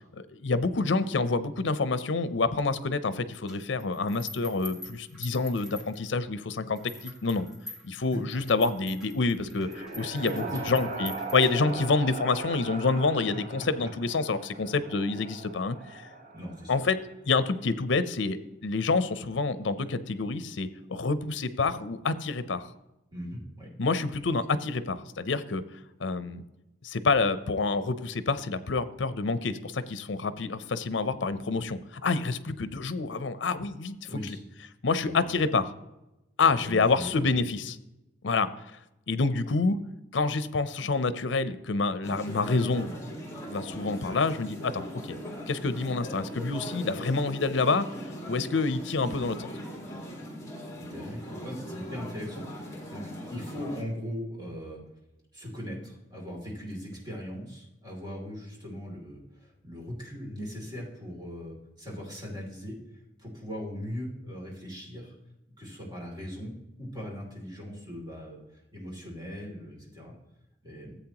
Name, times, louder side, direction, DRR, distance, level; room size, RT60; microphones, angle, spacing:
voice 1, 0.2-7.5 7.8-16.0 16.7-17.0 17.3-22.7 23.8-25.6 26.0-26.4 26.8-33.9 34.8-35.7 36.4-37.8 38.2-38.5 39.1-39.8 40.1-42.9 43.5-45.2 45.5-47.9 48.3-49.5, left 3 dB, 75° left, 14 dB, 0.6 m, -27 dB
sound 1, 3.5-6.3 6.8-11.9, left 1 dB, 5° right, 1.8 m, -46 dB
sound 2, 9.1-17.0, right 3 dB, 45° right, 1.3 m, -39 dB
voice 2, 10.2-10.8 13.8-13.9 16.3-16.9 23.1-23.7 34.0-34.4 35.0-35.3 36.4-37.2 50.8-53.0 53.3-54.8 55.3-62.8 63.2-65.1 65.6-66.5 66.8-68.4 68.7-70.1 70.6-71.0, equal, 25° right, -2 dB, 2.8 m, -39 dB
sound 3, 42.0-53.8, equal, 15° left, 1.8 m, -40 dB
14.0 x 8.1 x 2.9 m, 0.95 s
head